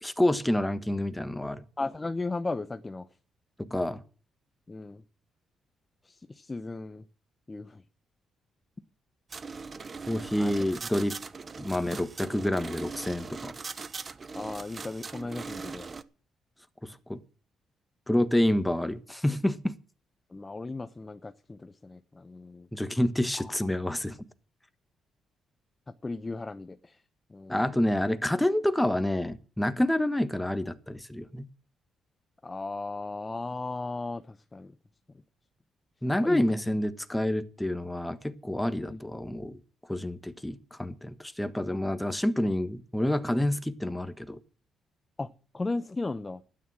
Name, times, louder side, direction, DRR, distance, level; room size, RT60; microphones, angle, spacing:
voice 1, 0.0-1.6 3.6-4.0 10.1-11.2 11.6-13.5 16.8-17.2 18.1-19.7 22.7-24.2 27.5-31.5 36.0-39.6 39.9-44.4, left 1 dB, 5° left, 1.3 m, -28 dB
voice 2, 1.8-3.1 4.7-5.0 6.0-7.0 7.5-7.8 10.4-10.5 14.3-15.9 20.3-22.7 23.4-23.5 25.9-27.0 27.3-27.7 32.4-34.7 36.2-36.4 38.9-39.0 45.2-45.3 45.5-46.4, left 3 dB, 20° left, 0.8 m, -36 dB
sound 1, 9.3-16.0, right 4 dB, 35° right, 0.9 m, -40 dB
12.0 x 9.7 x 6.3 m
cardioid pair, 90°, 0 cm